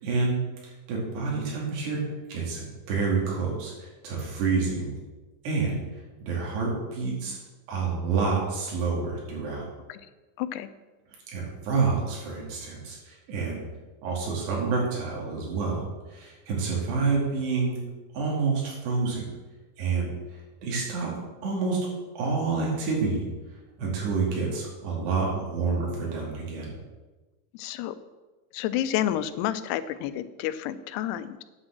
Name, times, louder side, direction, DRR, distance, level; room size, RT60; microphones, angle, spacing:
voice 1, 0.0-0.4 0.9-2.0 2.3-3.7 4.0-4.9 5.4-5.8 6.2-7.4 7.7-9.6 11.3-13.6 14.0-15.8 16.1-17.8 18.1-19.2 19.8-20.1 20.6-21.1 21.4-21.8 22.2-23.2 23.8-26.7, right 4 dB, 85° right, -3 dB, 4.7 m, -28 dB
voice 2, 10.4-10.7 27.5-28.0 28.5-31.4, left 11 dB, 90° left, 13 dB, 2.7 m, -30 dB
9.6 x 6.2 x 7.5 m, 1.2 s
omnidirectional pair, 4.7 m